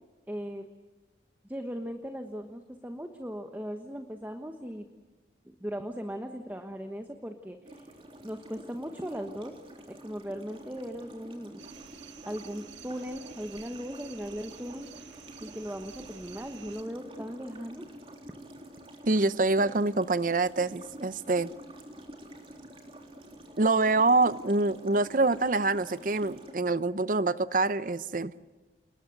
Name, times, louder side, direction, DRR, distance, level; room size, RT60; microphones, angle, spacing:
voice 1, 0.3-0.7 1.4-4.9 5.4-7.9 8.2-9.6 9.9-11.6 12.3-17.9, equal, 10° right, 1.2 m, -38 dB
sound 1, 7.6-26.5, right 1 dB, 30° right, 3.5 m, -48 dB
sound 2, 11.6-16.8, right 8 dB, 85° right, 1.7 m, -51 dB
voice 2, 19.1-21.5 23.6-28.3, right 3 dB, 45° right, 0.7 m, -25 dB
29.0 x 20.5 x 8.0 m
head